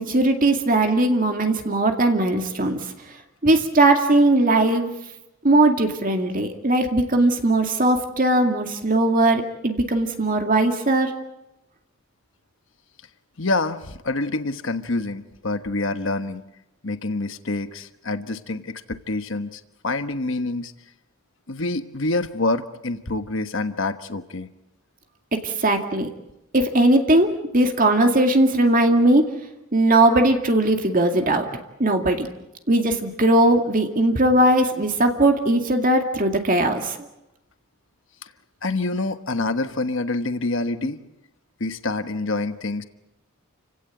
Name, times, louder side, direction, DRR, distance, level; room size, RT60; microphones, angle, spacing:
voice 1, 0.0-2.8 3.4-4.9 5.4-11.1 25.4-26.1 26.5-29.3 29.7-31.5 31.8-32.3 32.7-37.0, right 1 dB, 40° right, 4 dB, 2.2 m, -19 dB
voice 2, 13.4-16.4 16.8-20.7 21.5-24.5 38.2-38.3 38.6-41.0 41.6-42.8, left 2 dB, 60° left, 9 dB, 1.2 m, -27 dB
30.0 x 16.5 x 9.1 m, 0.93 s
head